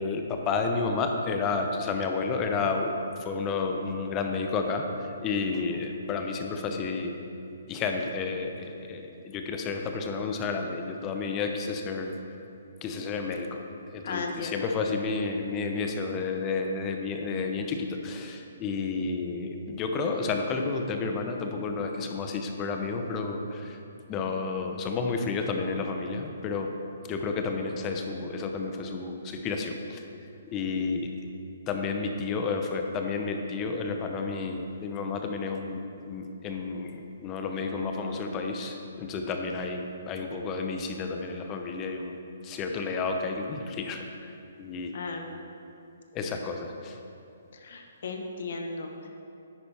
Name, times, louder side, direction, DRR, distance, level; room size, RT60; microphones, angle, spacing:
voice 1, 0.0-2.9 3.2-4.9 5.2-7.2 7.7-12.2 12.8-13.6 13.9-23.8 24.1-26.7 27.1-30.0 30.5-31.1 31.7-42.2 42.4-44.3 44.6-44.9 46.1-47.0, left 4 dB, 25° left, 4 dB, 0.7 m, -31 dB
voice 2, 14.0-14.7 44.9-45.4 46.2-46.4 47.6-49.1, left 3 dB, 60° left, 3 dB, 1.1 m, -36 dB
10.5 x 8.4 x 3.4 m, 2.7 s
hypercardioid pair, 145°, 0 cm